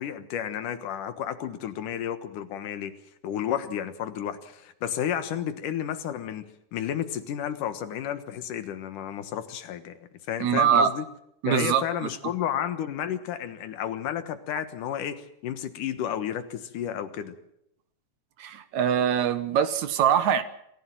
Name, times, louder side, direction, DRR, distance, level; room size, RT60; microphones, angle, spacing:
voice 1, 0.0-2.9 3.2-11.0 11.5-17.4, left 9 dB, 90° left, 3.0 m, -32 dB
voice 2, 10.4-10.9 11.4-11.8 18.4-20.4, right 8 dB, 70° right, 2.5 m, -23 dB
27.0 x 15.5 x 7.6 m
omnidirectional pair, 3.6 m